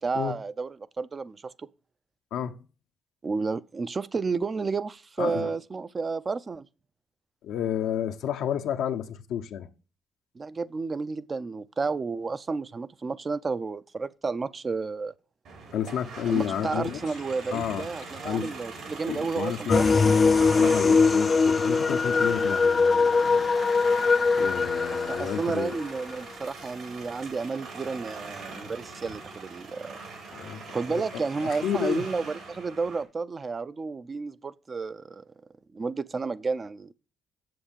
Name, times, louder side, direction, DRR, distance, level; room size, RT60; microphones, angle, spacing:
voice 1, 0.0-1.7 3.2-6.7 10.4-15.1 16.3-19.9 25.1-30.0 30.7-35.2 35.7-36.9, right 4 dB, 35° right, 0.5 m, -31 dB
voice 2, 2.3-2.6 5.2-5.5 7.4-9.7 15.7-17.1 17.5-17.9 18.2-18.5 19.1-19.8 20.6-23.5 24.4-25.8 30.3-32.0, left 9 dB, 85° left, 0.8 m, -31 dB
sound 1, 15.4-33.0, right 4 dB, 75° right, 3.7 m, -42 dB
sound 2, 19.7-25.8, left 4 dB, 35° left, 0.4 m, -22 dB
7.7 x 7.0 x 6.9 m
cardioid pair, 90°, 0 cm